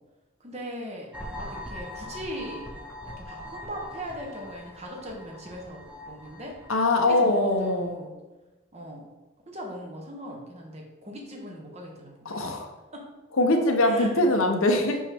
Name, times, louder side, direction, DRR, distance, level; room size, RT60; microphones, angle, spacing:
voice 1, 0.4-2.7 3.2-6.6 7.1-8.1 8.7-9.1 9.5-12.5 12.9-13.0 13.9-14.1, equal, 30° right, 0 dB, 1.1 m, -39 dB
sound 1, 1.1-7.8, left 1 dB, 5° right, 0.7 m, -42 dB
voice 2, 6.7-8.0 12.3-12.7 13.4-15.0, left 2 dB, 85° left, 4 dB, 0.9 m, -22 dB
5.6 x 5.4 x 3.5 m, 1.1 s
head